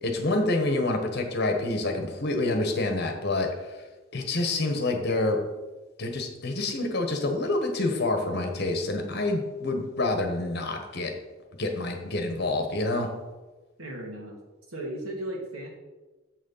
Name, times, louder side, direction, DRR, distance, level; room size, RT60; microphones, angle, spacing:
voice 1, 0.0-3.8 4.1-5.4 6.0-11.1 11.6-13.1, left 2 dB, 50° left, 4 dB, 1.3 m, -27 dB
voice 2, 13.8-14.4 14.7-15.7, right 1 dB, 85° right, 0 dB, 2.3 m, -35 dB
7.2 x 6.4 x 5.6 m, 1.2 s
head